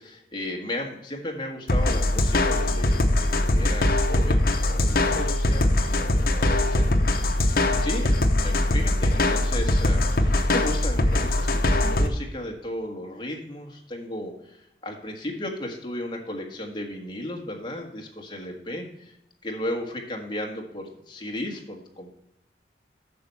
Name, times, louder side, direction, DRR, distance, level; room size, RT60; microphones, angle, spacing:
voice 1, 0.0-4.4 4.7-8.2 8.4-19.2 19.4-22.2, left 1 dB, 25° left, 1 dB, 1.6 m, -35 dB
sound 1, 1.7-12.1, left 1 dB, 55° left, 0.9 m, -22 dB
8.7 x 6.0 x 5.5 m, 0.81 s
head